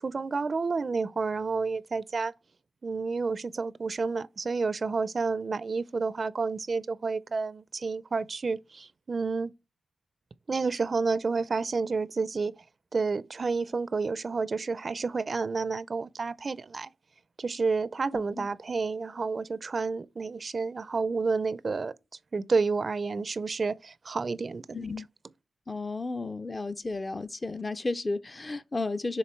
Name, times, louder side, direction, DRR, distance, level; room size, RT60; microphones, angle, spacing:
voice 1, 0.0-2.3 2.8-9.5 10.5-12.6 12.9-16.9 17.4-21.9 22.3-24.9, right 4 dB, 50° right, 0.5 m, -30 dB
voice 2, 18.1-18.5 24.7-25.1 25.7-29.2, left 3 dB, 30° left, 0.6 m, -33 dB
7.6 x 3.4 x 4.4 m
cardioid pair, 65°, 0 cm